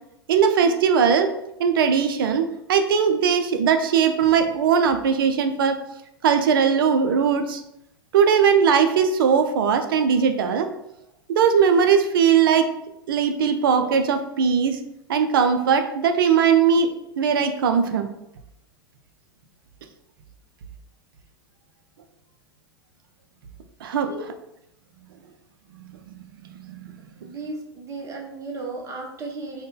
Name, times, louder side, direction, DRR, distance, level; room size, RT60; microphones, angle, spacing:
voice 1, 0.3-1.3 1.6-5.8 6.2-7.6 8.1-10.7 11.3-12.7 13.1-14.8 15.1-16.9 17.2-18.1 23.8-24.1 26.6-26.8, right 7 dB, 60° right, 7 dB, 0.5 m, -19 dB
voice 2, 27.2-29.6, right 3 dB, 25° right, 1 dB, 0.8 m, -35 dB
3.8 x 2.2 x 3.6 m, 0.83 s
figure-of-eight pair, 95°, 13 cm